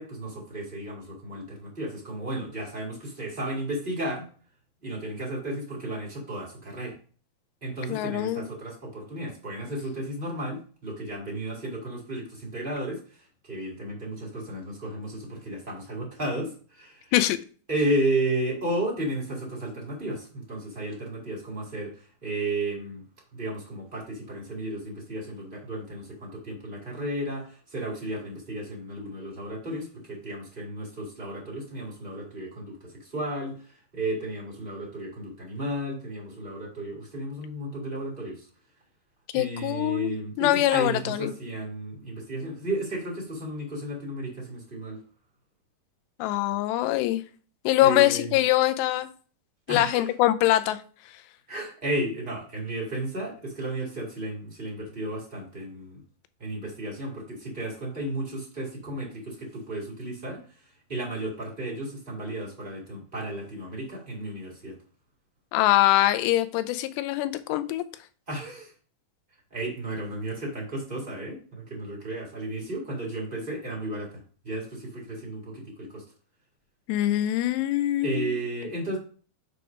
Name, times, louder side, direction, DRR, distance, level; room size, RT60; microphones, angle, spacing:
voice 1, 0.0-4.3 4.8-7.0 7.6-17.1 17.7-23.0 23.3-38.5 39.3-45.0 47.8-48.4 49.7-50.1 51.5-56.0 56.4-64.8 68.3-68.7 69.5-76.0 78.0-79.0, right 1 dB, 25° right, 1.1 m, -33 dB
voice 2, 7.9-8.4 17.1-17.4 39.3-41.3 46.2-47.2 47.7-49.1 49.7-50.8 65.5-67.8 76.9-78.4, left 15 dB, 80° left, 2.7 m, -23 dB
6.8 x 4.9 x 5.2 m
omnidirectional pair, 5.0 m